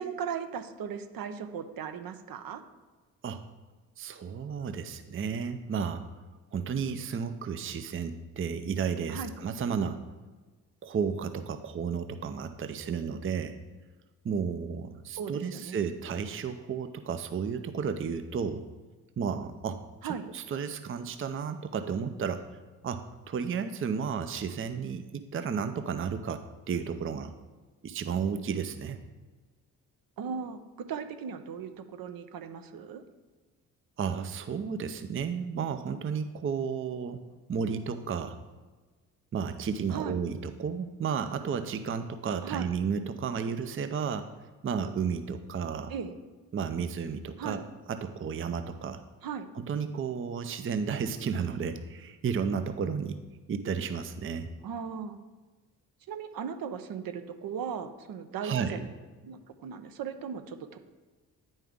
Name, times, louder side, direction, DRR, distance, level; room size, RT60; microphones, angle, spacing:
voice 1, 0.0-2.6 9.1-9.3 15.2-15.9 20.0-20.3 30.2-33.0 39.9-40.2 42.4-42.7 45.9-46.1 47.4-47.6 49.2-49.5 54.6-55.2 56.1-58.9 59.2-60.8, right 7 dB, 60° right, 9 dB, 0.8 m, -37 dB
voice 2, 4.0-6.1 6.5-10.0 10.8-13.6 14.2-18.7 19.2-22.4 22.8-26.4 26.7-27.3 27.8-29.0 34.0-37.2 37.5-38.4 39.3-44.3 44.6-45.9 46.5-47.6 47.9-49.0 49.5-53.2 53.5-54.5 58.4-58.8, right 6 dB, 30° right, 10 dB, 0.6 m, -32 dB
9.2 x 5.3 x 3.6 m, 1.3 s
hypercardioid pair, 50°, 40 cm